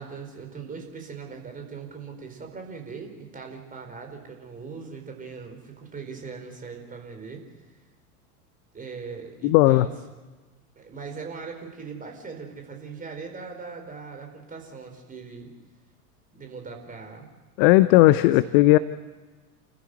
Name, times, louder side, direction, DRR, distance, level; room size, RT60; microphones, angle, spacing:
voice 1, 0.0-7.4 8.7-9.9 10.8-15.5 16.3-17.3 17.8-18.8, right 5 dB, 15° right, 3 dB, 4.7 m, -40 dB
voice 2, 9.4-9.9 17.6-18.8, left 17 dB, 40° left, 16 dB, 0.6 m, -16 dB
29.0 x 14.5 x 8.1 m, 1.3 s
figure-of-eight pair, 85°, 46 cm